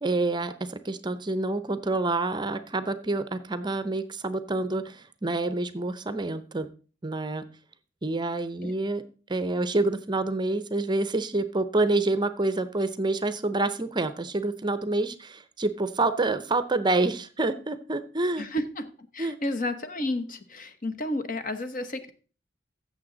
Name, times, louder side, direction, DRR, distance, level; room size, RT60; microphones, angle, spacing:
voice 1, 0.0-6.7 7.0-7.4 8.0-9.0 9.3-18.5 19.2-19.4, right 2 dB, 25° right, 12 dB, 0.6 m, -27 dB
voice 2, 18.4-22.1, left 1 dB, 50° left, 8 dB, 1.1 m, -32 dB
15.0 x 6.9 x 3.9 m, 0.38 s
head